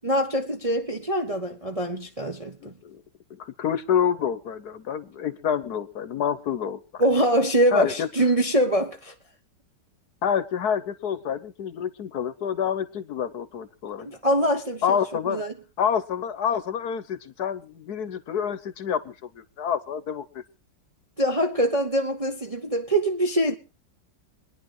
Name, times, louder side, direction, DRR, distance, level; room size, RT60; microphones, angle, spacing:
voice 1, 0.0-2.7 7.0-9.1 14.0-15.0 15.3-15.5 21.2-23.6, right 1 dB, 25° right, 0.8 m, -24 dB
voice 2, 2.6-3.0 3.3-7.0 7.7-8.1 10.2-14.1 14.8-15.4 15.8-20.4, left 8 dB, 60° left, 1.3 m, -28 dB
25.0 x 10.5 x 3.9 m
omnidirectional pair, 2.0 m